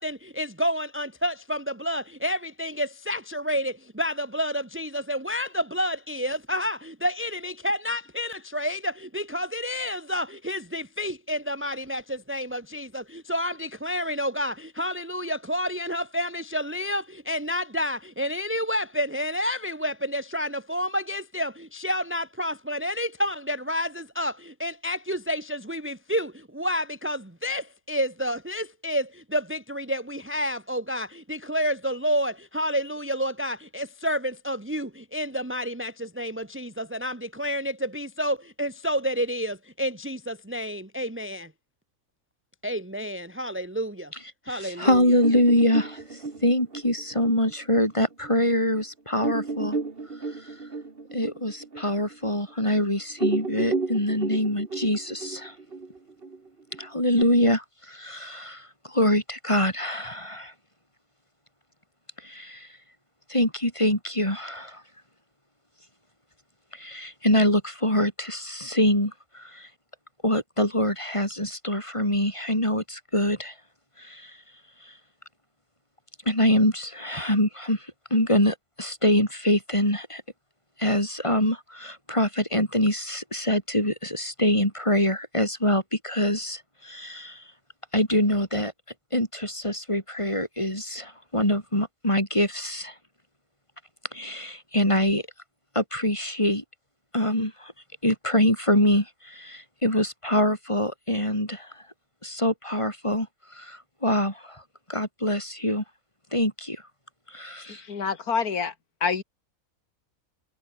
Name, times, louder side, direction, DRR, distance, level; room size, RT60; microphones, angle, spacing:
voice 1, 0.0-41.5 42.6-44.1 44.5-45.0, equal, 10° right, 1.6 m, -29 dB
voice 2, 44.5-46.0 46.4-49.8 51.1-55.5 56.8-60.5 62.2-62.7 63.3-64.8 66.7-69.7 70.2-73.5 74.0-74.3 76.3-77.9 78.1-80.2 80.8-87.4 87.9-88.7 89.1-92.9 94.1-95.2 95.7-96.6 97.1-97.7 98.0-101.7 102.2-103.3 103.5-104.6 104.9-105.8 106.3-106.8 107.3-107.8, left 1 dB, 20° left, 7.8 m, -24 dB
sound 1, 45.2-48.3 48.7-48.8 49.2-52.8 53.1-57.2, right 4 dB, 40° right, 2.2 m, -33 dB
voice 3, 107.6-108.7 109.0-109.2, left 6 dB, 90° left, 2.4 m, -27 dB
omnidirectional pair, 1.5 m